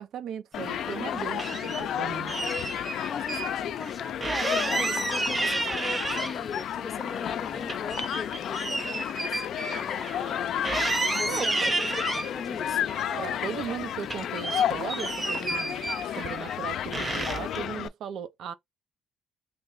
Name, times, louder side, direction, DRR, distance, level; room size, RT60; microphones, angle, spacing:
voice 1, 0.0-2.3 11.3-11.7 13.2-18.5, right 8 dB, 70° right, 0.6 m, -37 dB
Human group actions, 0.5-17.9, left 10 dB, 65° left, 0.4 m, -32 dB
sound 1, 0.8-1.8 2.3-3.5 3.8-3.9 4.2-6.6 7.0-10.4 10.6-12.3 12.9-13.8 14.0-16.6 16.9-17.6, right 3 dB, 20° right, 0.8 m, -31 dB
voice 2, 3.0-10.7 11.1-11.7 12.3-13.0, left 4 dB, 25° left, 0.7 m, -39 dB
3.3 x 2.5 x 3.9 m
cardioid pair, 130°, 0 cm